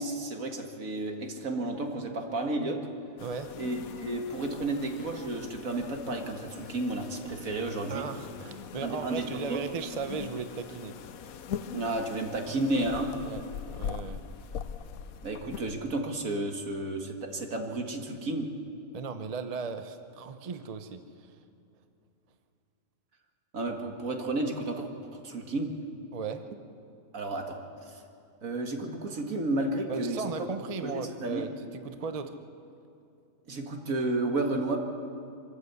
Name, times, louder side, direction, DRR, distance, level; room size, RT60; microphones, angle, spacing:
voice 1, 0.0-2.8 3.6-8.0 8.8-9.6 11.7-13.1 15.2-18.5 23.5-24.8 25.1-25.7 27.1-28.0 28.4-30.2 30.8-31.5 33.5-34.8, right 2 dB, 70° right, 3 dB, 2.2 m, -32 dB
sound 1, 3.2-15.7, left 7 dB, 80° left, 1.2 m, -42 dB
voice 2, 7.9-10.9 13.2-13.4 13.7-14.2 18.9-21.4 26.1-26.4 29.9-32.3, right 5 dB, 35° right, 8 dB, 0.7 m, -36 dB
25.0 x 13.0 x 8.2 m, 2.6 s
omnidirectional pair, 1.5 m